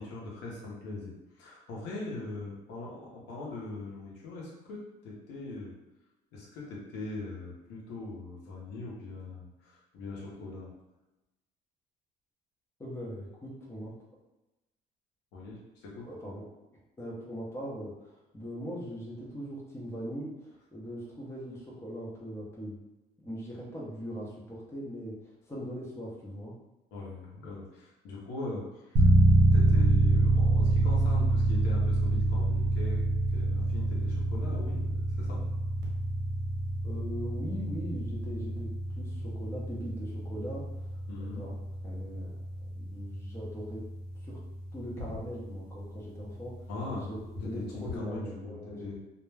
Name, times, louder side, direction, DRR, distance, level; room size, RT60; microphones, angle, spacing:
voice 1, 0.0-5.7 6.3-10.7 15.3-16.1 26.9-33.0 33.3-34.9 35.2-35.4 41.1-41.4 46.7-47.0 47.3-48.9, left 2 dB, 90° left, -4 dB, 0.8 m, -41 dB
voice 2, 12.8-13.9 16.0-16.4 17.0-22.8 23.2-26.5 36.8-40.9 41.2-41.5 41.8-42.4 42.7-43.9 44.2-44.4 44.7-48.9, equal, 15° left, -4 dB, 0.8 m, -40 dB
sound 1, 29.0-45.7, right 2 dB, 80° right, 0.9 m, -27 dB
2.4 x 2.1 x 3.2 m, 1.0 s
cardioid pair, 110°, 17 cm